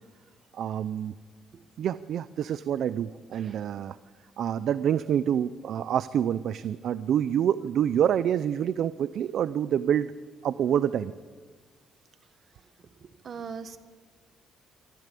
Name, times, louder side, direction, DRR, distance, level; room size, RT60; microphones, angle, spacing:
voice 1, 0.5-1.2 1.8-4.0 4.4-10.1 10.4-11.1, right 9 dB, 65° right, 15 dB, 0.6 m, -27 dB
voice 2, 13.2-13.8, right 6 dB, 45° right, 11 dB, 1.4 m, -39 dB
24.5 x 14.5 x 8.4 m, 1.5 s
cardioid pair, 125°, 0 cm